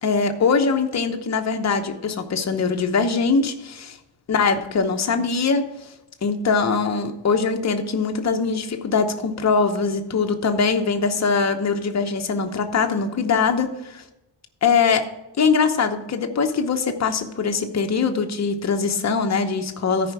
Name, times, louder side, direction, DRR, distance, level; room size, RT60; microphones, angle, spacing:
voice 1, 0.0-4.0 4.3-5.6 6.2-14.0 14.6-15.0 15.4-20.1, left 5 dB, 40° left, 5 dB, 0.9 m, -22 dB
13.5 x 5.1 x 4.7 m, 0.95 s
wide cardioid pair, 155°, 43 cm